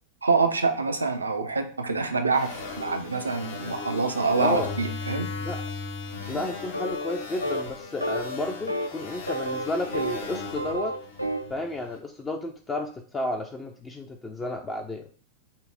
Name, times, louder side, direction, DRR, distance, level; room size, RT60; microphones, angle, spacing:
voice 1, 0.2-5.3, right 4 dB, 80° right, 7 dB, 0.4 m, -26 dB
sound 1, 2.3-11.8, left 4 dB, 60° left, 0.8 m, -37 dB
voice 2, 4.4-4.7 5.4-5.6 6.3-10.9 11.5-15.1, left 2 dB, 20° left, 3 dB, 0.4 m, -32 dB
sound 2, 6.7-7.2 7.4-7.7 8.0-8.4 8.7-8.9 9.3-10.3 10.5-11.5, equal, 90° left, 0.3 m, -30 dB
5.4 x 2.0 x 3.3 m, 0.42 s
figure-of-eight pair, 90°, 0 cm